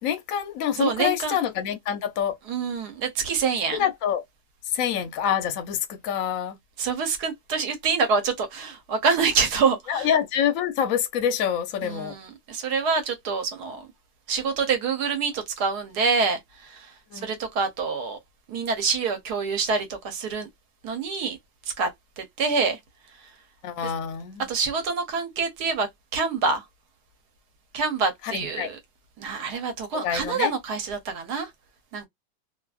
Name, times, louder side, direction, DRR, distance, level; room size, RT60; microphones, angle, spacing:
voice 1, 0.0-2.4 3.8-4.2 4.6-6.6 9.9-12.2 17.1-17.3 23.6-24.5 28.2-28.7 30.0-30.5, left 9 dB, 65° left, 0.8 m, -26 dB
voice 2, 0.8-1.3 2.5-3.8 6.8-10.1 11.8-13.9 14.3-17.0 17.2-18.2 18.5-20.5 20.8-21.4 21.7-21.9 22.2-22.8 23.8-23.9 24.5-26.6 27.7-28.8 29.2-31.5 31.9-32.1, right 5 dB, 65° right, 1.3 m, -26 dB
2.9 x 2.5 x 2.3 m
omnidirectional pair, 2.0 m